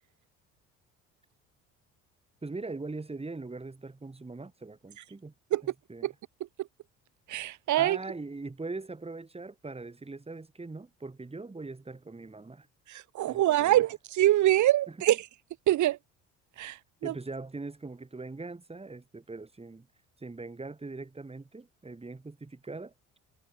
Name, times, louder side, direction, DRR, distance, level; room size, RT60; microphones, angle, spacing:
voice 1, 2.4-5.3 5.9-6.0 7.8-12.7 13.3-13.8 17.0-19.9 20.2-23.2, right 3 dB, 15° right, 2.8 m, -41 dB
voice 2, 7.3-8.0 12.9-15.3 15.7-16.0 16.6-17.1, right 14 dB, 55° right, 1.3 m, -25 dB
hypercardioid pair, 60°, 36 cm